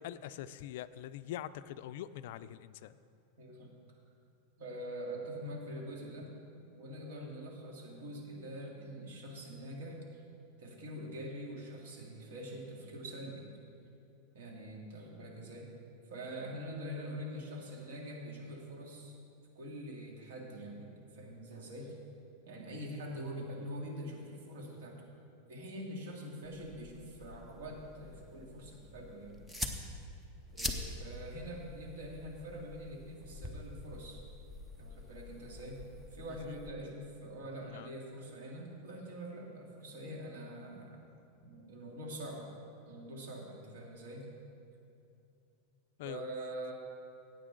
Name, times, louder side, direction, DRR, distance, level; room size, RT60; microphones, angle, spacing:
voice 1, 0.0-2.9 36.5-36.6 37.6-37.9 46.0-46.2, left 12 dB, 60° left, 14 dB, 0.3 m, -44 dB
voice 2, 3.4-3.7 4.6-6.3 6.7-10.2 10.6-13.5 14.3-15.7 16.1-19.1 19.5-22.0 22.5-25.0 25.5-29.5 30.5-34.2 34.8-35.8 36.1-41.0 41.4-42.5 42.9-44.3 46.0-46.7, equal, 75° right, -1 dB, 2.3 m, -44 dB
sound 1, 26.4-36.7, left 1 dB, 5° right, 0.7 m, -45 dB
16.0 x 8.7 x 3.8 m, 2.8 s
supercardioid pair, 165°, 0 cm